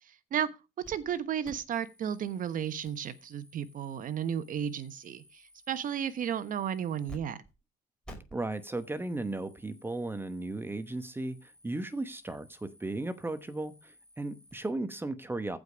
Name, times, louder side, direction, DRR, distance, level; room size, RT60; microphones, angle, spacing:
sound 1, 0.8-1.2 1.4-7.2 7.4-7.5 8.0-14.7, right 1 dB, 5° left, 5.0 m, -55 dB
voice 1, 0.9-5.4 5.7-7.4, right 9 dB, 55° right, 1.2 m, -33 dB
voice 2, 8.3-15.6, right 2 dB, 15° right, 1.0 m, -36 dB
15.0 x 5.2 x 5.1 m
cardioid pair, 110°, 17 cm